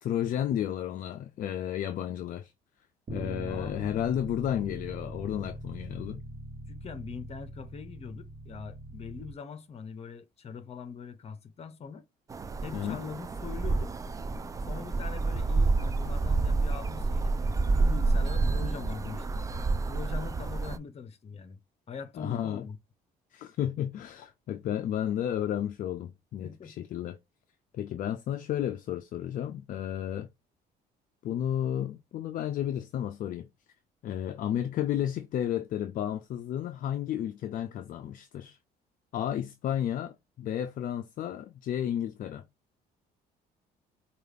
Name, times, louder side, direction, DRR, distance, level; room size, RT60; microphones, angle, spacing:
voice 1, 0.0-2.5 3.1-6.2 12.7-13.0 22.2-22.7 23.3-27.2 27.7-30.3 31.2-33.5 34.0-38.6 39.1-42.5, left 10 dB, 55° left, 0.4 m, -32 dB
Bass guitar, 3.1-9.3, right 1 dB, 40° right, 1.2 m, -41 dB
voice 2, 3.4-3.9 6.7-12.0 12.6-13.9 14.7-19.4 19.9-21.6 21.9-22.8 24.6-24.7 26.4-26.7, left 6 dB, 40° left, 0.8 m, -42 dB
sound 1, 12.3-20.8, right 3 dB, 20° right, 0.3 m, -28 dB
4.6 x 2.4 x 3.4 m
cardioid pair, 110°, 17 cm